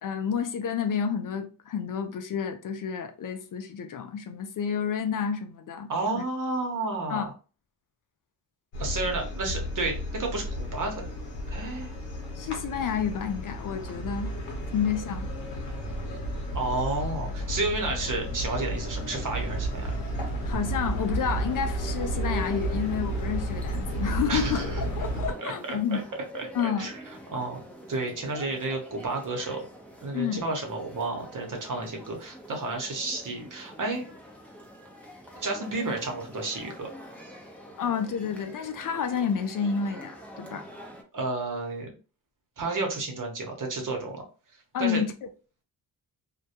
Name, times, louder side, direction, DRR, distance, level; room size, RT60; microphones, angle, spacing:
voice 1, 0.0-6.2 7.1-7.3 12.3-14.3 14.7-15.3 20.4-26.0 26.5-26.9 30.1-30.4 37.8-40.7 44.7-45.3, left 7 dB, 55° left, 0.4 m, -30 dB
voice 2, 5.9-7.3 8.8-11.0 11.5-11.9 16.5-19.9 24.3-24.8 25.4-26.0 26.3-27.0 27.3-27.6 27.9-29.7 30.0-34.1 35.4-36.9 41.1-41.9 42.6-44.2 44.8-45.0, right 2 dB, 50° right, 0.9 m, -31 dB
sound 1, 8.7-25.3, right 1 dB, 85° left, 0.9 m, -32 dB
sound 2, 20.5-23.0, right 2 dB, 90° right, 0.6 m, -41 dB
sound 3, 21.2-41.0, equal, 5° left, 0.6 m, -46 dB
2.2 x 2.1 x 2.8 m
cardioid pair, 55°, 40 cm